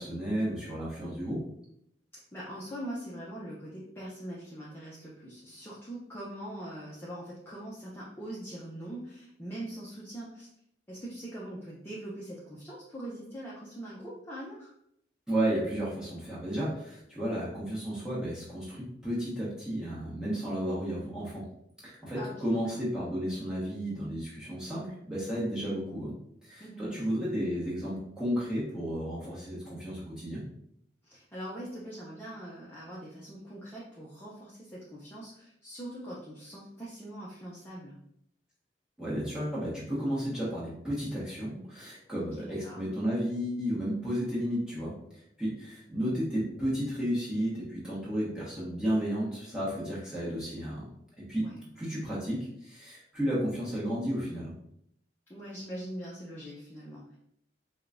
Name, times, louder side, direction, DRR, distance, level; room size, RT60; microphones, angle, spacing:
voice 1, 0.0-1.4 15.3-21.4 21.8-26.1 26.4-30.4 39.0-44.9 45.4-50.9 51.3-51.4 51.8-54.5, equal, 5° right, -8 dB, 1.2 m, -33 dB
voice 2, 2.3-10.5 10.9-14.7 22.1-22.8 26.6-27.0 31.0-37.9 42.2-42.8 51.4-51.6 55.3-57.2, right 1 dB, 10° left, -7 dB, 0.5 m, -42 dB
4.9 x 2.3 x 2.5 m, 0.73 s
head